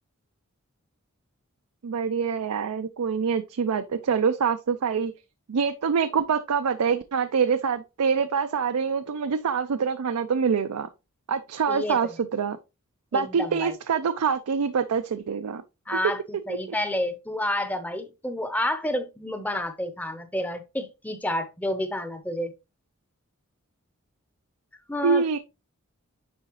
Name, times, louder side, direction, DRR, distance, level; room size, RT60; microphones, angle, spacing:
voice 1, 1.8-5.1 5.5-10.9 11.3-12.6 13.1-15.6 16.5-16.6 25.0-25.4, right 6 dB, 85° right, 0.5 m, -25 dB
voice 2, 11.7-12.1 13.1-13.7 15.9-22.5 24.9-25.2, left 1 dB, 5° left, 0.6 m, -29 dB
9.5 x 3.8 x 3.0 m
head